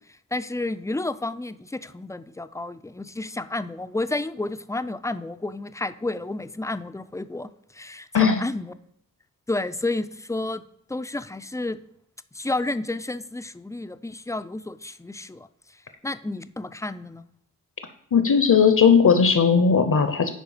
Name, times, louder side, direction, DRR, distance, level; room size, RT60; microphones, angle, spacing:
voice 1, 0.3-8.7 9.5-10.6 10.9-11.8 12.3-15.5 16.0-17.2, left 2 dB, 10° left, 12 dB, 0.3 m, -31 dB
voice 2, 18.1-20.3, left 6 dB, 60° left, 9 dB, 0.7 m, -17 dB
10.5 x 4.4 x 4.9 m, 0.74 s
wide cardioid pair, 75°, 35 cm